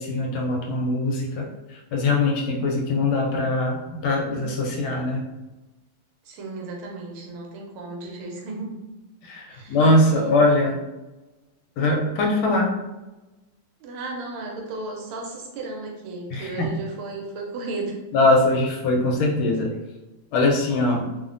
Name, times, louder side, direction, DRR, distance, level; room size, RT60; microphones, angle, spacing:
voice 1, 0.0-1.5 1.9-3.8 4.0-5.3 9.2-10.8 11.8-12.7 16.3-16.7 18.1-19.7 20.3-21.0, left 2 dB, 85° left, 0 dB, 1.5 m, -21 dB
voice 2, 6.3-8.8 9.5-9.8 10.1-10.3 13.8-18.0, right 3 dB, 80° right, 0 dB, 1.5 m, -34 dB
3.5 x 2.1 x 2.5 m, 1.1 s
omnidirectional pair, 2.4 m